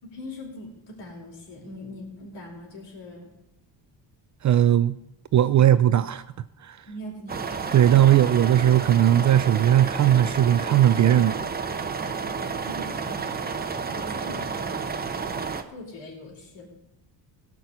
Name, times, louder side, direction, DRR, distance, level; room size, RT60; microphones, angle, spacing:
voice 1, 0.0-3.3 5.5-5.9 6.9-7.4 7.9-8.0 12.0-13.3 13.9-16.7, left 1 dB, 70° left, 4.6 m, -42 dB
voice 2, 4.4-4.9 5.3-6.2 6.6-6.8 7.7-11.5, right 11 dB, 40° right, 0.5 m, -18 dB
sound 1, 7.3-15.6, right 5 dB, 20° right, 0.9 m, -31 dB
17.0 x 6.1 x 8.2 m
cardioid pair, 140°, 44 cm